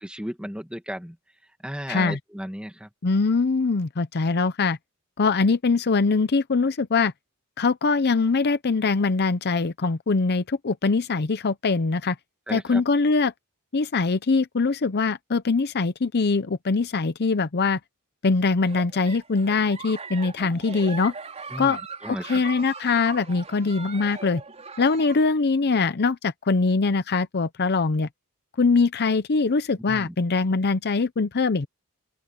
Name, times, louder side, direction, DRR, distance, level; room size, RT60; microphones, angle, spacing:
voice 1, 0.0-1.2 1.6-2.9 12.5-12.8 21.5-22.4 29.9-30.1, equal, 5° right, 2.1 m, -34 dB
voice 2, 1.9-2.2 3.0-4.8 5.2-7.1 7.6-12.2 12.5-13.3 13.7-17.8 18.2-21.1 21.6-21.8 22.1-24.4 24.8-28.1 28.6-31.7, left 4 dB, 45° left, 0.7 m, -22 dB
Giggle, 18.6-25.3, right 4 dB, 30° right, 4.5 m, -39 dB
open air
head